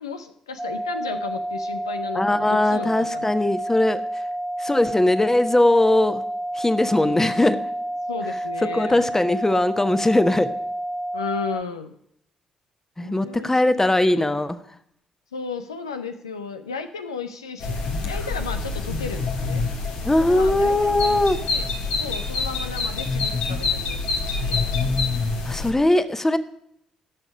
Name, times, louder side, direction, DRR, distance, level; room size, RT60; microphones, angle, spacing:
voice 1, 0.0-3.3 7.0-7.3 8.1-9.1 11.1-11.9 13.0-14.4 15.3-17.8 18.0-19.6 20.2-21.2 21.5-21.7 22.0-24.6, left 5 dB, 90° left, 8 dB, 0.6 m, -34 dB
sound 1, 0.6-11.6, right 1 dB, 5° right, 0.6 m, -29 dB
voice 2, 2.1-4.0 4.6-6.2 6.5-7.6 8.6-10.5 13.0-14.6 20.0-21.4 25.4-26.4, left 1 dB, 15° left, 12 dB, 1.2 m, -20 dB
sound 2, 17.6-25.7, left 4 dB, 70° left, 1.9 m, -26 dB
17.0 x 6.6 x 5.2 m, 0.73 s
hypercardioid pair, 40°, 3 cm